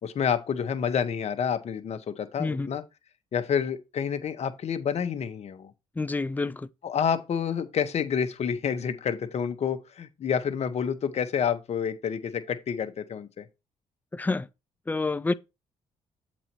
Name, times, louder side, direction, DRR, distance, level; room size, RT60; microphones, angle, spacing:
voice 1, 0.0-2.8 3.3-5.7 6.8-13.5, left 7 dB, 55° left, 1.1 m, -29 dB
voice 2, 2.4-2.7 6.0-6.7 14.1-14.5 14.9-15.3, left 3 dB, 15° left, 0.5 m, -28 dB
7.6 x 4.2 x 4.5 m
supercardioid pair, 70°, 13 cm